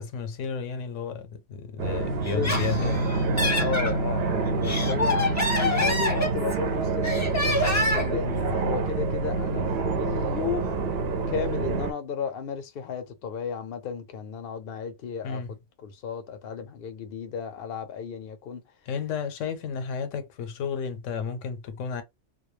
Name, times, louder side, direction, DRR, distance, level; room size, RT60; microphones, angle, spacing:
voice 1, 0.0-3.0 15.2-15.5 18.9-22.0, left 6 dB, 85° left, 1.0 m, -32 dB
sound 1, 1.8-11.9, right 3 dB, 60° right, 0.7 m, -27 dB
Laughter, 2.2-3.9 4.5-6.7 7.0-8.2, left 1 dB, 15° left, 0.6 m, -26 dB
voice 2, 2.3-2.9 3.5-9.7 10.0-10.8 11.3-18.6, left 6 dB, 60° left, 0.7 m, -34 dB
2.2 x 2.2 x 3.0 m
omnidirectional pair, 1.3 m